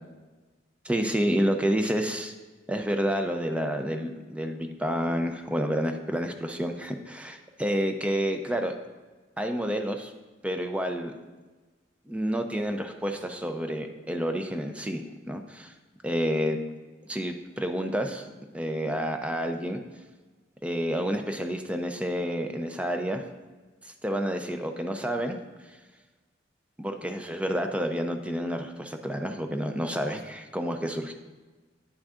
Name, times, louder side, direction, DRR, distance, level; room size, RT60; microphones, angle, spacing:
voice 1, 0.8-2.3 2.7-8.7 9.4-10.1 10.4-11.1 12.1-15.7 16.0-16.6 17.1-18.3 18.5-19.8 20.6-23.2 23.8-25.4 26.8-31.1, equal, 5° right, 5 dB, 0.4 m, -29 dB
9.7 x 6.1 x 2.4 m, 1.3 s
head